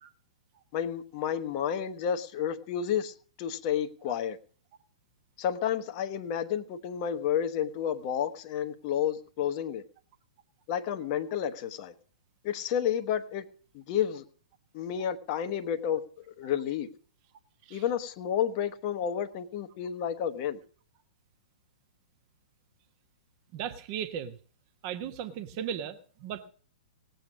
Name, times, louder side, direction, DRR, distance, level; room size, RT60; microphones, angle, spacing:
voice 1, 0.7-4.4 5.4-9.8 10.7-11.9 12.4-13.4 13.7-14.2 14.7-16.0 16.4-16.9 17.7-20.6, left 9 dB, 35° left, 8 dB, 1.0 m, -31 dB
voice 2, 23.5-24.4 24.8-26.5, right 9 dB, 35° right, 9 dB, 1.1 m, -37 dB
18.5 x 8.0 x 6.2 m, 0.43 s
figure-of-eight pair, 110°, 4 cm